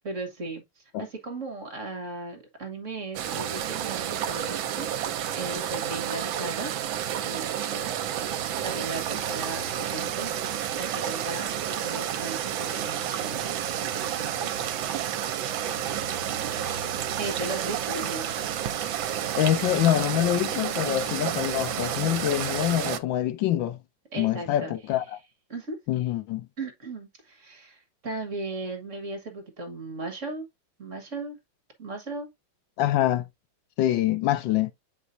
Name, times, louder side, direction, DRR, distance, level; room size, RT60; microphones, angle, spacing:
voice 1, 0.0-4.9 5.3-6.7 7.2-7.9 8.3-14.5 17.2-18.3 24.1-24.7 25.5-25.8 26.6-30.4 30.8-31.4 31.8-32.3, right 2 dB, 40° right, 1.5 m, -37 dB
sound 1, 3.1-23.0, right 10 dB, 80° right, 1.4 m, -30 dB
voice 2, 19.4-23.8 24.2-25.2 25.9-26.5 32.8-33.2 33.8-34.7, left 12 dB, 75° left, 1.3 m, -25 dB
8.1 x 4.9 x 2.6 m
omnidirectional pair, 2.2 m